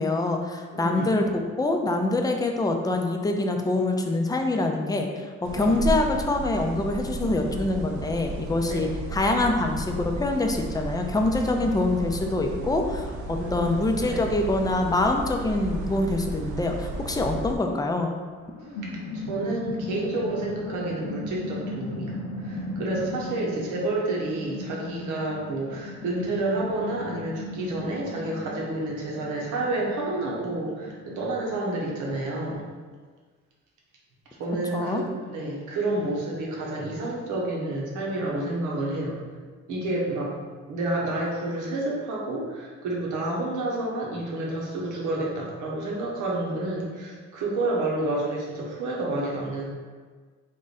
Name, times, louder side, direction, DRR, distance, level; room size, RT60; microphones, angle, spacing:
voice 1, 0.0-18.1 34.7-35.0, left 2 dB, 15° left, 3 dB, 0.4 m, -25 dB
voice 2, 0.7-1.1 5.5-5.7 8.7-8.9 13.3-14.4 19.1-32.7 34.4-39.2 39.7-40.3 40.7-49.6, right 2 dB, 90° right, -3 dB, 1.0 m, -29 dB
sound 1, 5.4-17.5, right 2 dB, 70° right, 0.6 m, -34 dB
sound 2, 18.3-32.5, left 2 dB, 65° left, 0.7 m, -37 dB
3.6 x 2.5 x 4.0 m, 1.5 s
cardioid pair, 90°, 30 cm